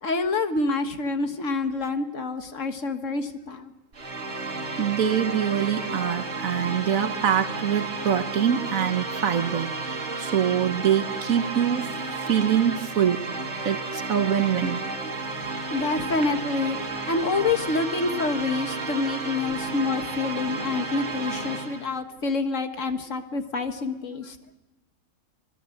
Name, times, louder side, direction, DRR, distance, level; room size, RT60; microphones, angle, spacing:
voice 1, 0.0-3.7 15.7-16.8 17.1-24.4, left 3 dB, 70° left, 7 dB, 1.9 m, -27 dB
sound 1, 3.9-21.9, right 3 dB, 55° right, 2.3 m, -32 dB
voice 2, 4.8-9.7 10.2-12.0 12.3-13.2 13.6-14.8, right 9 dB, 85° right, 9 dB, 1.5 m, -24 dB
26.0 x 18.5 x 7.8 m, 1.0 s
omnidirectional pair, 1.4 m